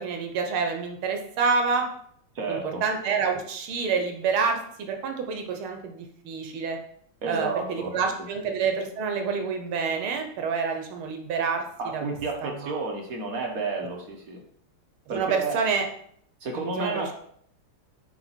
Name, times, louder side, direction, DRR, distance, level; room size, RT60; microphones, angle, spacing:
voice 1, 0.0-1.9 2.5-6.8 7.3-12.0 12.4-12.9 15.1-15.9 16.6-17.1, right 5 dB, 75° right, 4 dB, 1.7 m, -28 dB
voice 2, 2.3-2.8 7.2-7.9 11.8-14.4 15.1-15.6 16.4-17.1, right 4 dB, 50° right, 1 dB, 1.2 m, -31 dB
7.7 x 3.6 x 4.4 m, 0.65 s
omnidirectional pair, 2.4 m